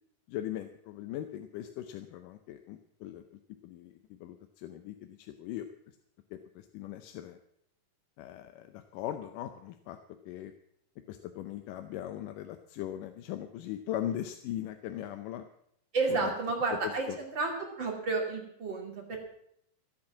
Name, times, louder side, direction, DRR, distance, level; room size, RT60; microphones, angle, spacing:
voice 1, 0.3-3.2 3.6-5.7 6.3-7.4 8.2-10.0 10.3-10.5 11.1-15.4 16.1-16.3 16.8-17.2, left 12 dB, 80° left, 8 dB, 2.3 m, -39 dB
voice 2, 15.9-17.5 17.8-19.2, right 3 dB, 35° right, 0 dB, 3.1 m, -31 dB
15.0 x 8.8 x 7.2 m, 0.72 s
omnidirectional pair, 3.8 m